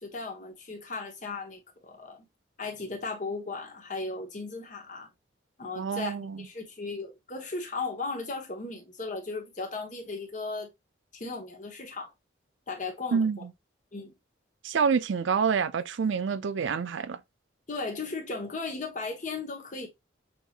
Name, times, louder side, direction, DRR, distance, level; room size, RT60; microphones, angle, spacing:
voice 1, 0.0-2.2 2.6-5.1 5.6-10.7 11.1-12.1 12.7-13.3 13.9-14.1 17.7-19.9, left 3 dB, 40° left, 1.2 m, -36 dB
voice 2, 5.8-6.5 13.1-13.4 14.6-17.2, right 6 dB, 80° right, 0.4 m, -27 dB
5.8 x 3.0 x 2.4 m
head